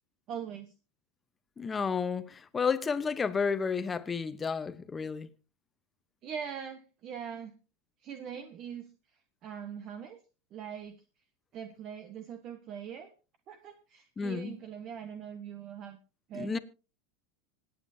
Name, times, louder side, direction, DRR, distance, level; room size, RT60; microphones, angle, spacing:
voice 1, 0.3-0.7 6.2-7.5 8.0-8.9 9.4-10.2 10.5-10.9 11.5-13.1 13.5-16.0 16.3-16.6, right 8 dB, 45° right, 1.2 m, -42 dB
voice 2, 1.6-5.3 14.2-14.6 16.3-16.6, left 5 dB, 20° left, 0.9 m, -31 dB
26.0 x 9.0 x 2.8 m
hypercardioid pair, 115°, 0 cm